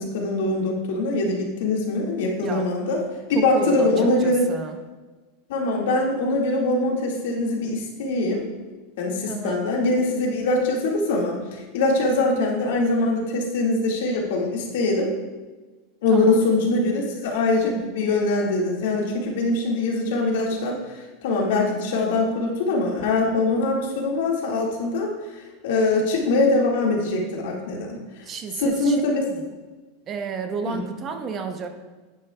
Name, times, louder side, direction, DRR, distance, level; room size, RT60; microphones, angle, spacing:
voice 1, 0.0-3.0 3.3-4.4 5.5-8.4 9.0-15.1 16.0-25.1 25.6-28.0 28.6-29.3 30.7-30.8, left 2 dB, 75° left, -1 dB, 1.8 m, -23 dB
voice 2, 3.3-3.9 4.2-4.8 9.3-9.7 16.1-16.4 28.2-29.0 29.3-29.4 30.1-31.8, right 5 dB, 25° right, 6 dB, 0.7 m, -32 dB
10.5 x 8.8 x 2.3 m, 1.3 s
supercardioid pair, 150°, 0 cm